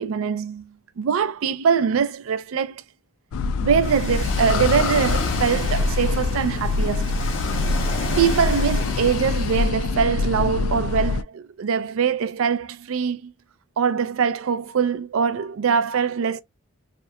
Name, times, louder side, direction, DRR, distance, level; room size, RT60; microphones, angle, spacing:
voice 1, 0.0-2.8 3.6-7.2 8.2-13.3 13.8-16.4, right 6 dB, 80° right, 0.4 m, -23 dB
sound 1, 3.3-11.2, left 3 dB, 90° left, 0.3 m, -24 dB
Ocean, 3.8-9.7, left 2 dB, 70° left, 1.1 m, -31 dB
2.8 x 2.1 x 2.2 m
head